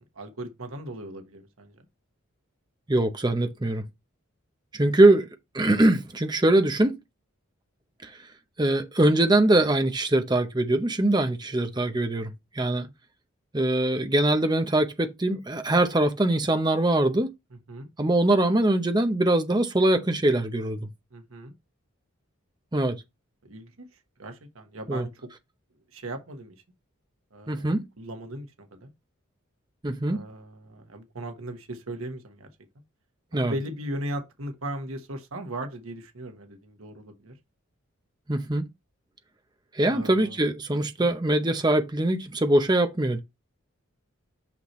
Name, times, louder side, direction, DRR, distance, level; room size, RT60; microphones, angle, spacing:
voice 1, 0.1-1.8 12.6-12.9 17.7-17.9 21.1-21.5 23.4-23.9 24.2-25.3 25.9-26.6 27.3-28.9 30.1-32.5 33.3-37.3 39.9-40.4 41.0-41.1, right 1 dB, 80° right, 1.3 m, -38 dB
voice 2, 2.9-3.8 4.7-5.3 5.5-6.9 8.0-8.1 8.6-12.9 13.5-17.3 18.0-20.9 22.7-23.0 24.9-25.0 27.5-27.8 29.8-30.2 33.3-33.5 38.3-38.6 39.7-43.2, right 1 dB, 20° right, 0.7 m, -22 dB
5.9 x 5.9 x 3.1 m
head